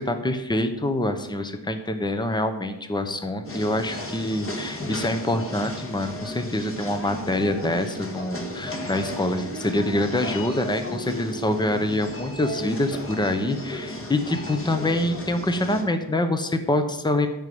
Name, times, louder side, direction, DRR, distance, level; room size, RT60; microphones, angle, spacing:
voice 1, 0.0-17.3, left 1 dB, 10° left, 8 dB, 0.9 m, -25 dB
sound 1, 3.4-15.8, left 1 dB, 30° left, 1.6 m, -34 dB
13.0 x 5.3 x 7.8 m, 0.94 s
wide cardioid pair, 165°, 43 cm